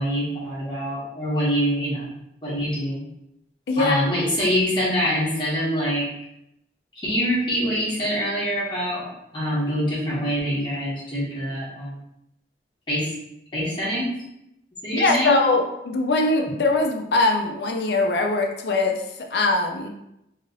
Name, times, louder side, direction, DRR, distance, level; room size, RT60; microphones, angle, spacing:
voice 1, 0.0-2.1 2.4-3.0 3.8-6.1 7.0-12.0 12.9-13.1 13.5-14.1 14.8-15.4, equal, 25° left, -8 dB, 1.1 m, -25 dB
voice 2, 14.9-19.9, left 2 dB, 70° left, 2 dB, 0.4 m, -22 dB
3.0 x 2.8 x 2.6 m, 0.83 s
head